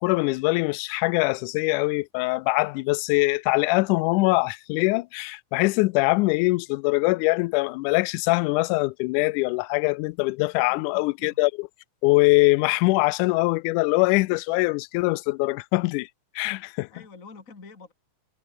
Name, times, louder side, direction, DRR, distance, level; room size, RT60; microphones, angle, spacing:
voice 1, 0.0-11.7 12.0-16.1 16.4-16.9, left 24 dB, 80° left, 1.9 m, -23 dB
voice 2, 10.7-11.4 16.9-17.9, left 4 dB, 25° left, 2.7 m, -47 dB
omnidirectional pair, 3.9 m